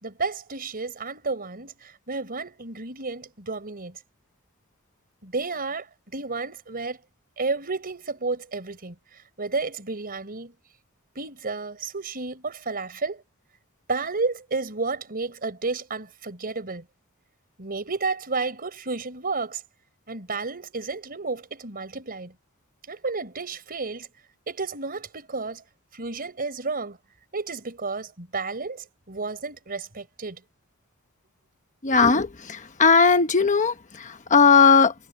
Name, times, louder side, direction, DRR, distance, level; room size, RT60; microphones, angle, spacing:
voice 1, 0.0-4.0 5.2-5.9 6.1-7.0 7.4-9.0 9.4-10.5 11.1-13.2 13.9-16.9 17.6-19.6 20.1-22.3 22.9-24.1 24.5-25.6 25.9-27.0 27.3-30.4, right 3 dB, 45° right, 4.3 m, -31 dB
voice 2, 31.8-34.9, left 5 dB, 35° left, 1.1 m, -18 dB
head